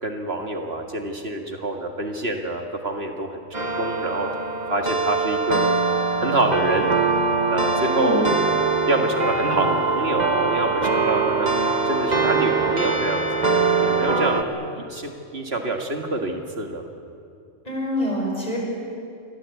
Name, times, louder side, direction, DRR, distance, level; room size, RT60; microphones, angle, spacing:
voice 1, 0.0-4.3 4.7-5.6 6.2-6.9 7.5-8.4 8.9-11.5 11.9-13.4 13.8-16.8, right 2 dB, 55° right, 3 dB, 2.1 m, -26 dB
sound 1, 3.5-14.4, right 4 dB, 35° right, 1.6 m, -22 dB
voice 2, 7.9-8.2 17.7-18.6, left 1 dB, 30° left, -2 dB, 7.0 m, -26 dB
28.0 x 22.0 x 8.4 m, 2.5 s
omnidirectional pair, 1.3 m